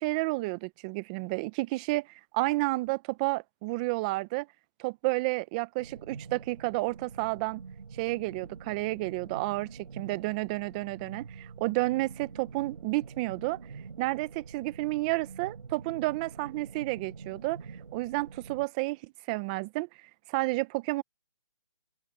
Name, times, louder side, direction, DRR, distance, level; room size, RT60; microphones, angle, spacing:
voice 1, 0.0-4.5 4.8-7.6 7.9-13.6 14.0-17.6 17.9-19.9 20.3-21.0, right 22 dB, 15° right, 0.5 m, -31 dB
sound 1, 5.8-18.7, right 5 dB, 80° right, 4.9 m, -46 dB
open air
hypercardioid pair, 160°, 16 cm